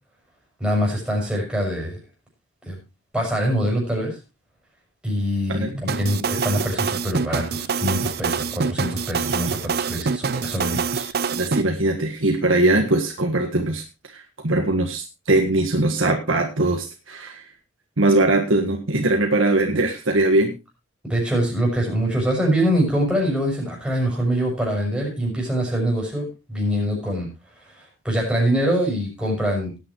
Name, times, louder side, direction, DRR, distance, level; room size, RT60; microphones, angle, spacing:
voice 1, 0.6-2.0 2.6-2.8 3.1-4.1 5.0-11.1 21.0-27.3 27.6-29.7, equal, 5° right, -2 dB, 6.4 m, -24 dB
sound 1, 5.9-11.6, right 5 dB, 50° right, 0.6 m, -25 dB
voice 2, 11.3-17.4 18.0-20.5, right 2 dB, 80° right, 2 dB, 1.6 m, -21 dB
19.0 x 9.3 x 3.1 m, 0.28 s
head